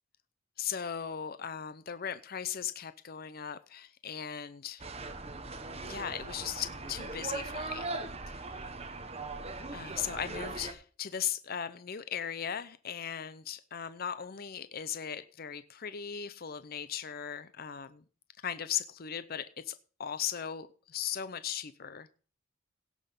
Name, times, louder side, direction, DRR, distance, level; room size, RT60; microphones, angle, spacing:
voice 1, 0.6-4.8 5.8-7.9 9.7-18.0 18.4-22.1, left 8 dB, 50° left, 0.6 m, -38 dB
sound 1, 4.8-10.7, right 3 dB, 30° right, 1.2 m, -40 dB
17.0 x 6.2 x 5.3 m
head